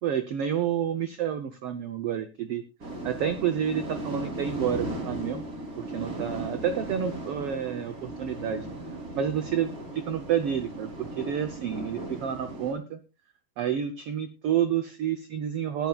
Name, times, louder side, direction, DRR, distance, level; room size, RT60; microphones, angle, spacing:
voice 1, 0.0-2.6 3.0-5.5 5.8-8.7 9.1-13.0 13.6-15.9, right 9 dB, 85° right, 9 dB, 1.2 m, -29 dB
sound 1, 2.8-12.7, right 2 dB, 25° right, 3.3 m, -37 dB
20.0 x 11.0 x 2.4 m, 0.27 s
omnidirectional pair, 3.8 m